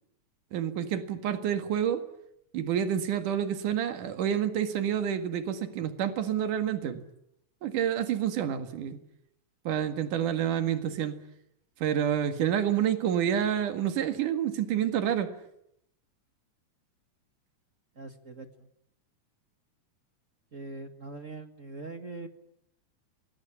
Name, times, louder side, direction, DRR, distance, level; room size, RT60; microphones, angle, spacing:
voice 1, 0.5-2.0 2.5-7.0 7.6-9.0 9.6-11.1 11.8-15.3, right 9 dB, 80° right, 8 dB, 3.4 m, -28 dB
voice 2, 17.9-18.5 20.5-22.3, right 3 dB, 30° right, 7 dB, 1.7 m, -42 dB
27.0 x 21.0 x 10.0 m, 0.77 s
omnidirectional pair, 3.6 m